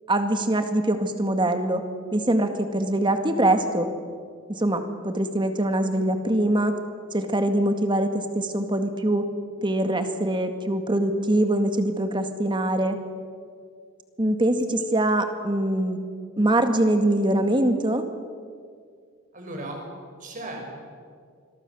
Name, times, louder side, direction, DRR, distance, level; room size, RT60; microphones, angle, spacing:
voice 1, 0.1-1.8 2.1-3.9 4.5-6.7 7.1-9.3 9.6-13.0 14.2-16.0 16.4-18.0, right 1 dB, 25° right, 7 dB, 2.0 m, -23 dB
voice 2, 19.3-19.8 20.2-20.8, right 1 dB, 40° right, 1 dB, 6.3 m, -36 dB
27.0 x 22.0 x 7.1 m, 2.1 s
head